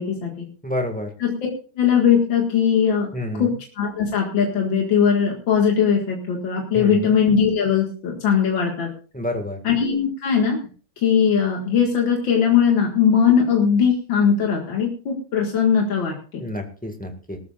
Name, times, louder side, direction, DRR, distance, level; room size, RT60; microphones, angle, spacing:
voice 1, 0.0-0.5 1.2-1.3 1.8-3.1 3.4-8.9 9.6-10.6 11.0-16.4, left 7 dB, 80° left, 0 dB, 2.7 m, -20 dB
voice 2, 0.6-1.1 3.1-3.5 6.7-7.1 9.1-9.6 16.4-17.4, left 1 dB, 5° left, 4 dB, 1.7 m, -29 dB
19.0 x 13.5 x 2.5 m, 0.38 s
omnidirectional pair, 2.1 m